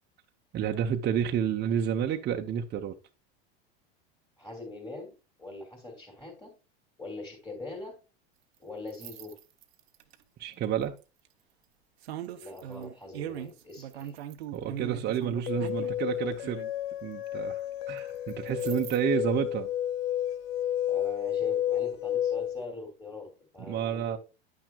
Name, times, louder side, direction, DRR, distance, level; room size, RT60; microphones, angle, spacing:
voice 1, 0.5-2.9 10.4-10.9 14.5-16.6 17.0-17.6 17.9-19.7 23.6-24.2, right 9 dB, 35° right, 0.9 m, -30 dB
voice 2, 4.4-5.1 5.4-6.5 7.0-8.0 8.6-9.4 12.3-14.1 18.6-18.7 20.8-24.2, left 2 dB, 10° left, 3.0 m, -42 dB
sound 1, 8.9-10.1 11.0-11.3 12.0-16.7 18.3-19.0, right 11 dB, 90° right, 0.9 m, -40 dB
sound 2, 15.5-22.6, left 11 dB, 75° left, 0.7 m, -31 dB
9.9 x 6.0 x 2.4 m
supercardioid pair, 110°, 30 cm